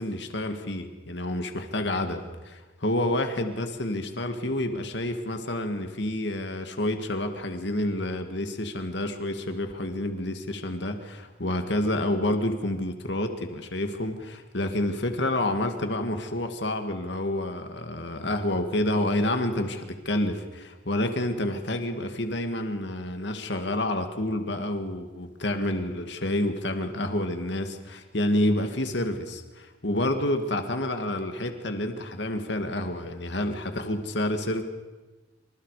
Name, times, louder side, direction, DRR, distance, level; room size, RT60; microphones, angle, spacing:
voice 1, 0.0-34.6, left 1 dB, 65° left, 6 dB, 2.1 m, -29 dB
27.5 x 26.0 x 5.0 m, 1.2 s
head